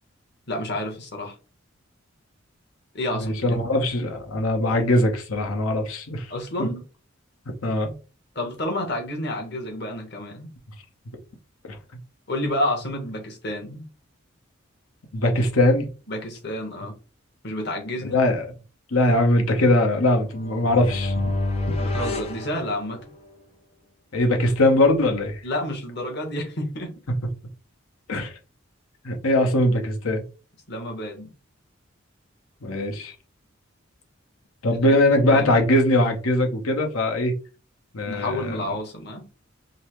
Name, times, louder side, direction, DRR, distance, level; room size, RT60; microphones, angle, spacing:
voice 1, 0.5-1.3 2.9-3.6 6.3-6.8 8.3-10.5 12.3-13.8 16.1-16.9 17.4-18.2 21.8-23.0 25.4-26.9 30.7-31.3 34.9-35.5 38.1-39.2, left 1 dB, 50° left, 1.1 m, -30 dB
voice 2, 3.1-6.3 7.6-7.9 11.7-11.8 15.1-15.9 18.1-18.5 18.9-21.2 24.1-25.4 28.1-28.3 29.0-30.2 32.6-33.1 34.6-37.4 37.9-38.6, left 1 dB, 90° left, 0.9 m, -21 dB
sound 1, 20.3-23.3, left 2 dB, 30° left, 0.6 m, -28 dB
5.3 x 2.0 x 3.0 m
head